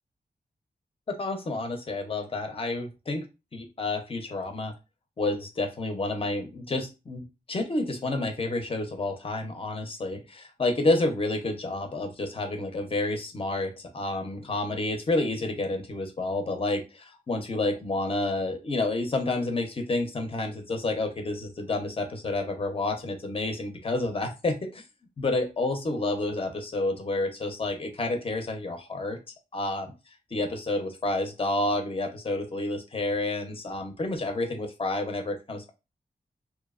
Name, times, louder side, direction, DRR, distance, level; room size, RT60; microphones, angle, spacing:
voice 1, 1.1-3.3 3.5-4.7 5.2-24.8 25.2-29.2 29.5-29.9 30.3-35.7, left 2 dB, 35° left, 5 dB, 0.6 m, -29 dB
2.8 x 2.0 x 2.3 m, 0.27 s
cardioid pair, 55°, 16 cm